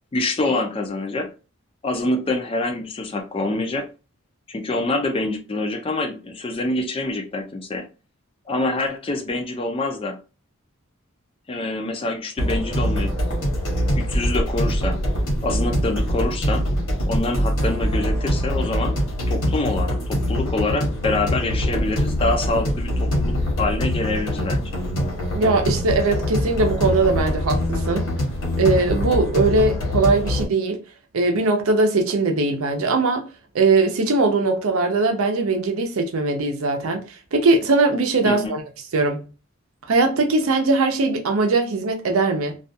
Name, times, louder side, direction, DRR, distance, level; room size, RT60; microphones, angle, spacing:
voice 1, 0.1-1.3 1.8-3.9 4.5-7.9 8.5-10.2 11.5-13.1 14.0-15.0 15.4-16.7 17.1-24.6 38.2-38.5, left 2 dB, 25° left, 0.4 m, -26 dB
sound 1, 12.4-30.5, equal, 65° left, 1.1 m, -23 dB
voice 2, 25.3-28.1 28.6-30.8 31.1-33.2 33.5-37.0 37.3-38.6 38.9-39.3 39.9-42.6, right 3 dB, 80° right, 0.6 m, -20 dB
2.4 x 2.2 x 2.6 m
head